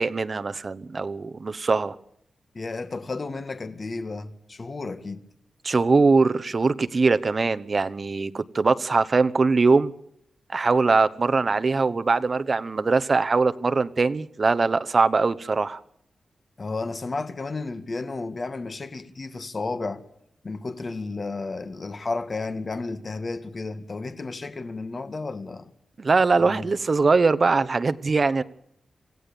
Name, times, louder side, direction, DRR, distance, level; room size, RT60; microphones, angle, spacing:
voice 1, 0.0-2.0 5.6-9.9 10.5-15.8 26.0-28.4, right 4 dB, 40° right, 1.0 m, -22 dB
voice 2, 2.5-5.3 16.6-20.0 20.4-25.7 26.4-26.7, left 3 dB, 35° left, 1.8 m, -32 dB
27.0 x 16.5 x 7.0 m
wide cardioid pair, 135°, 0 cm